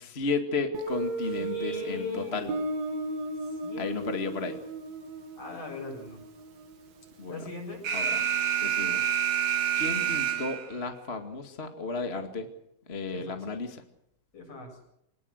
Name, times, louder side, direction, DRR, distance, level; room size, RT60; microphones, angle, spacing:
voice 1, 0.0-2.6 3.8-4.6 7.2-7.5 7.9-8.2 8.6-9.0 9.8-12.5 12.9-13.8, left 3 dB, 25° left, 6 dB, 1.6 m, -33 dB
Guitar, 0.7-7.4, right 2 dB, 90° right, 4.4 m, -36 dB
voice 2, 1.4-2.4 3.6-4.2 5.4-6.2 7.3-7.8 13.1-13.4 14.3-14.7, left 4 dB, 45° left, 2 dB, 9.0 m, -39 dB
Alarm, 7.8-10.8, right 9 dB, 65° right, 3.9 m, -27 dB
26.5 x 20.0 x 6.6 m, 0.77 s
omnidirectional pair, 4.1 m